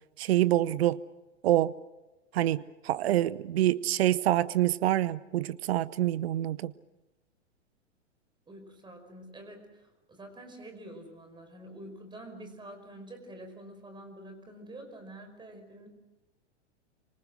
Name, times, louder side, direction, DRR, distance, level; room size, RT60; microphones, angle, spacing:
voice 1, 0.2-1.0 1.4-1.7 2.3-6.7, right 14 dB, 60° right, 0.8 m, -26 dB
voice 2, 8.5-15.9, right 1 dB, 15° right, 5.4 m, -47 dB
27.0 x 25.0 x 6.4 m
figure-of-eight pair, 105°, 36 cm